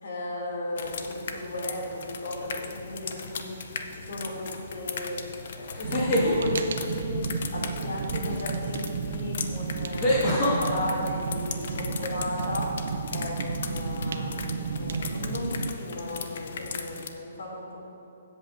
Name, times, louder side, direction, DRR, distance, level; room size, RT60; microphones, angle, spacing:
voice 1, 0.0-5.2 5.5-7.2 7.5-12.7 13.1-17.8, left 1 dB, 70° left, -2 dB, 2.5 m, -35 dB
sound 1, 0.8-17.1, left 5 dB, 45° left, 0.5 m, -38 dB
sound 2, 3.1-3.6 5.7-6.3 8.6-8.7 10.0-10.6, left 1 dB, 15° left, 1.6 m, -24 dB
Fire, 5.8-15.7, right 5 dB, 55° right, 0.5 m, -32 dB
16.5 x 8.0 x 2.6 m, 2.7 s
hypercardioid pair, 180°, 0 cm